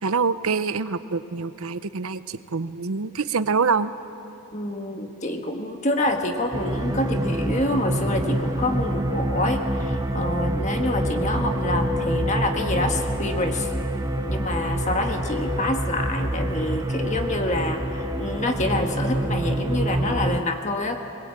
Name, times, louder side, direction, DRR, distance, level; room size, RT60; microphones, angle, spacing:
voice 1, 0.0-3.9, right 5 dB, 75° right, 13 dB, 0.7 m, -25 dB
voice 2, 4.5-13.7 14.3-21.0, left 1 dB, 30° left, 4 dB, 1.5 m, -27 dB
sound 1, 6.0-20.2, left 2 dB, 85° left, 5.2 m, -35 dB
sound 2, 6.5-20.4, right 1 dB, 15° right, 0.6 m, -27 dB
21.5 x 21.0 x 8.8 m, 2.9 s
head